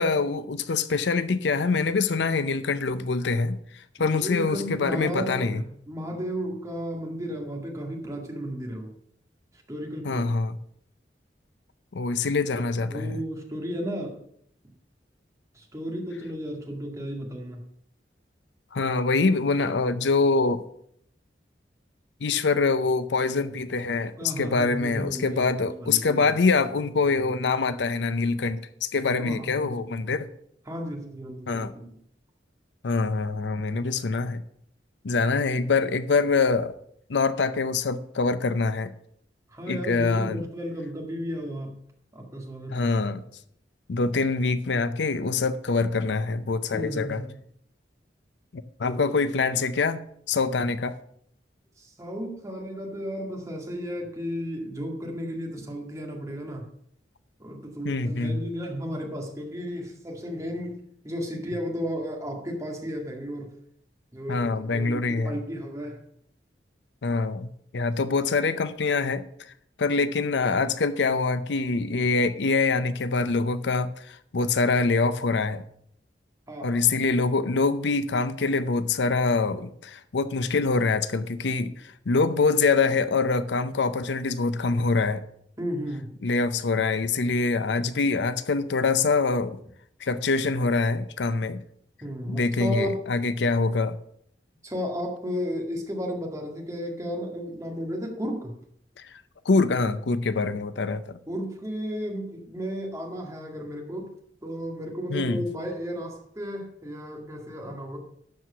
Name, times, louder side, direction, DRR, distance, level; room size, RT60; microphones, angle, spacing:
voice 1, 0.0-3.6 4.0-5.6 10.0-10.6 11.9-13.2 18.7-20.6 22.2-30.3 31.5-31.7 32.8-34.4 35.0-36.7 37.1-38.9 39.7-40.4 42.7-43.2 43.9-47.2 48.5-50.0 50.3-51.0 57.8-58.4 64.3-65.4 67.0-67.5 67.7-69.2 69.8-75.6 76.6-85.2 86.2-89.6 90.0-91.6 92.3-94.0 99.0-99.1 99.5-101.2 105.1-105.4, left 4 dB, 80° left, 0.6 m, -25 dB
voice 2, 4.0-8.9 9.7-10.2 12.8-14.2 14.6-14.7 15.5-17.6 24.2-26.4 29.2-29.6 30.7-31.9 39.5-41.7 42.1-42.9 46.7-47.3 51.8-56.6 57.4-63.5 64.1-66.0 76.5-77.0 85.6-86.1 92.0-93.0 94.6-98.5 101.3-104.1 104.4-108.0, equal, 20° right, 2.1 m, -34 dB
12.0 x 4.7 x 6.8 m
head